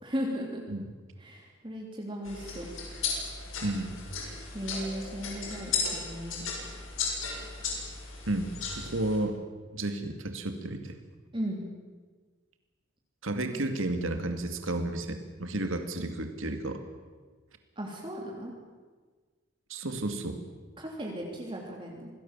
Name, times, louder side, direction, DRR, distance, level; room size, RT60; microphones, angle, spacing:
voice 1, 0.0-0.6 1.2-2.7 4.5-6.4 11.3-11.6 13.5-13.6 17.8-18.5 20.8-22.1, equal, 25° right, -1 dB, 3.1 m, -36 dB
sound 1, 2.2-9.2, left 5 dB, 80° left, 7.2 m, -35 dB
voice 2, 3.6-4.0 8.3-9.4 9.7-11.0 13.2-16.8 19.7-20.4, right 1 dB, 80° right, 6 dB, 2.4 m, -32 dB
27.0 x 19.5 x 7.5 m, 1.4 s
head